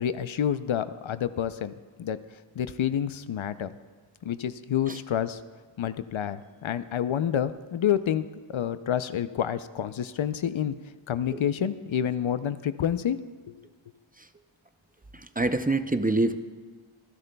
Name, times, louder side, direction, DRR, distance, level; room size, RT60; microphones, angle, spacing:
voice 1, 0.0-1.7 2.0-2.2 2.6-3.7 4.2-5.4 5.8-10.7 11.1-13.2 13.5-13.6, left 9 dB, 75° left, 13 dB, 0.6 m, -28 dB
voice 2, 15.1-16.4, right 2 dB, 20° right, 9 dB, 0.5 m, -26 dB
26.0 x 10.5 x 2.3 m, 1.5 s
wide cardioid pair, 70°, 48 cm